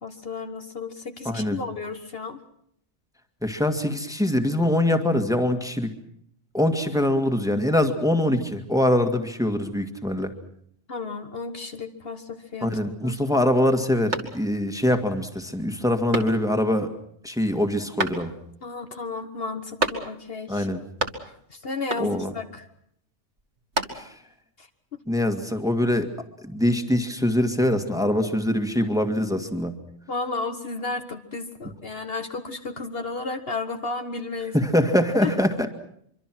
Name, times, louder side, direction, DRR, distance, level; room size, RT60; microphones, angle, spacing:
voice 1, 0.0-2.4 10.9-12.7 13.0-13.2 18.6-20.7 21.5-22.7 24.6-24.7 30.1-34.5 35.2-35.3, left 3 dB, 55° left, 7 dB, 1.6 m, -33 dB
voice 2, 1.3-1.6 3.4-5.9 6.5-10.3 12.6-16.9 17.2-18.3 20.5-20.8 22.0-22.3 23.9-24.1 25.1-26.1 26.4-29.8 34.5-35.7, left 1 dB, 5° right, 6 dB, 1.9 m, -23 dB
sound 1, 14.1-14.8 15.2-15.3 16.1-16.7 18.0-18.6 19.8-20.4 20.7-21.5 21.9-22.4 23.4-24.3, right 2 dB, 65° right, 2.5 m, -31 dB
24.5 x 24.5 x 6.2 m, 0.70 s
omnidirectional pair, 1.2 m